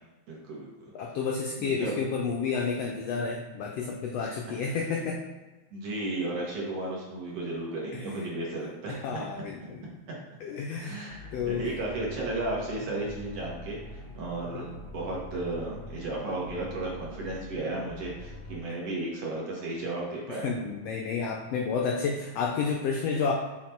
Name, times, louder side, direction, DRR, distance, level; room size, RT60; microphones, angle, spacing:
voice 1, 0.3-1.2 1.6-1.9 4.2-4.3 4.6-4.8 5.7-9.2 10.7-14.7 14.9-20.5, right 2 dB, 60° right, -3 dB, 2.1 m, -34 dB
voice 2, 0.9-5.2 7.9-8.0 8.9-9.9 10.4-11.1 11.3-11.7 14.5-14.7 20.4-23.3, left 5 dB, 80° left, 0 dB, 1.4 m, -30 dB
sound 1, 11.1-18.6, left 1 dB, 35° left, 0.9 m, -44 dB
6.4 x 3.9 x 4.4 m, 1.2 s
omnidirectional pair, 3.5 m